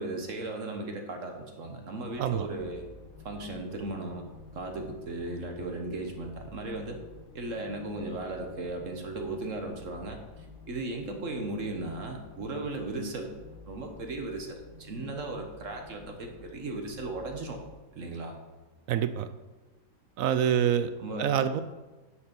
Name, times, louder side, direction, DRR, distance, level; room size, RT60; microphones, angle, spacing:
voice 1, 0.0-2.8 3.2-4.2 4.5-7.0 7.3-13.3 13.7-17.6 17.9-18.4 21.0-21.4, right 2 dB, 55° right, 3 dB, 1.4 m, -36 dB
sound 1, 2.0-17.7, left 3 dB, 85° left, 1.5 m, -50 dB
voice 2, 18.9-19.3 20.2-20.9 21.2-21.6, right 9 dB, 70° right, 11 dB, 0.8 m, -26 dB
9.7 x 5.8 x 5.3 m, 1.2 s
omnidirectional pair, 1.8 m